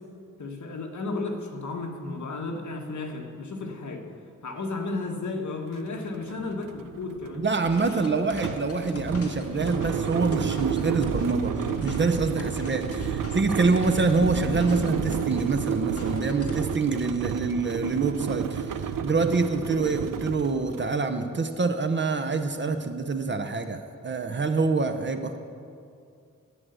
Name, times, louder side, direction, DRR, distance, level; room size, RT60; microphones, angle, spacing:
voice 1, 0.4-4.0 4.4-7.4 7.8-8.0, left 3 dB, 60° left, 2 dB, 1.5 m, -33 dB
sound 1, 5.7-5.8 6.2-20.9, right 7 dB, 75° right, 0.6 m, -31 dB
voice 2, 7.4-25.4, right 4 dB, 35° right, 8 dB, 0.6 m, -26 dB
sound 2, 7.6-16.6, left 2 dB, 45° left, 1.6 m, -42 dB
11.0 x 7.7 x 8.1 m, 2.4 s
wide cardioid pair, 150°, 32 cm